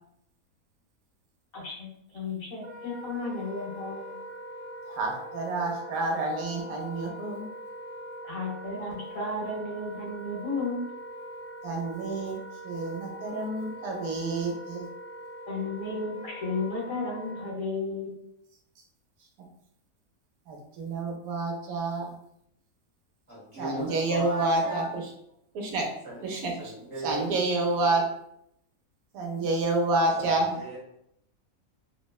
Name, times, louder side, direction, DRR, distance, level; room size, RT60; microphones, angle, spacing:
voice 1, 1.5-1.9 2.1-4.1 8.2-10.8 15.5-18.1, left 3 dB, 70° left, -3 dB, 1.2 m, -33 dB
Wind instrument woodwind instrument, 2.6-17.5, equal, 60° right, 1.2 m, -42 dB
voice 2, 4.9-7.4 11.6-12.4 12.6-14.9 20.5-22.1 23.6-25.0 25.5-25.9 26.2-26.7 27.0-28.1 29.1-30.5, right 2 dB, 75° right, 1 dB, 1.0 m, -29 dB
voice 3, 23.3-24.9 26.0-26.2 26.6-27.3 30.2-30.8, right 2 dB, 25° right, -6 dB, 0.8 m, -37 dB
2.9 x 2.1 x 2.2 m, 0.75 s
omnidirectional pair, 1.5 m